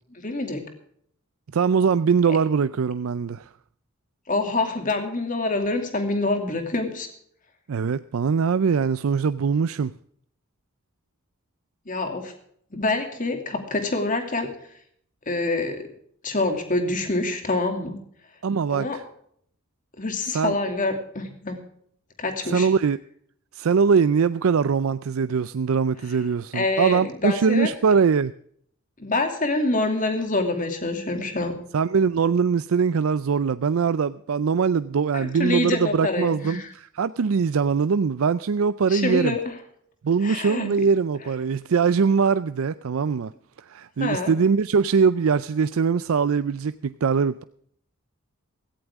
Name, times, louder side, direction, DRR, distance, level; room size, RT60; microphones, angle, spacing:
voice 1, 0.1-0.6 4.3-7.1 11.9-12.3 12.7-14.5 15.3-15.8 16.2-18.0 18.7-19.0 20.0-21.6 22.2-22.7 26.5-27.7 29.0-31.6 35.1-36.7 38.9-39.4 40.2-40.7 44.0-44.3, left 2 dB, 40° left, 2.6 m, -26 dB
voice 2, 1.5-3.5 7.7-9.9 18.4-19.0 20.2-20.5 22.4-23.0 23.5-28.3 31.7-39.4 40.0-43.3 43.6-47.4, right 5 dB, 80° right, 0.4 m, -22 dB
17.0 x 14.5 x 3.6 m
head